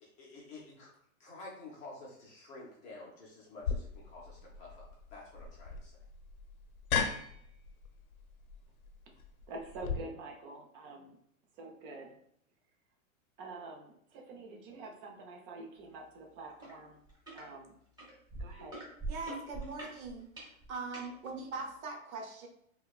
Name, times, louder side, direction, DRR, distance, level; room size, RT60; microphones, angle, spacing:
voice 1, 0.0-0.9 1.2-6.0, left 2 dB, 20° left, -4 dB, 0.5 m, -50 dB
sound 1, 3.6-9.9, left 6 dB, 90° left, 0.7 m, -38 dB
voice 2, 9.5-11.2 11.6-12.2 13.4-17.0 17.3-17.7 18.4-18.8, right 3 dB, 40° right, 1 dB, 0.8 m, -47 dB
sound 2, 16.6-16.7 17.1-17.4 18.0-21.1 21.8-21.9, right 2 dB, 10° right, 1.2 m, -42 dB
voice 3, 19.1-20.3 20.7-22.5, right 3 dB, 75° right, 2 dB, 1.0 m, -41 dB
4.4 x 2.2 x 2.4 m, 0.70 s
hypercardioid pair, 140°, 42 cm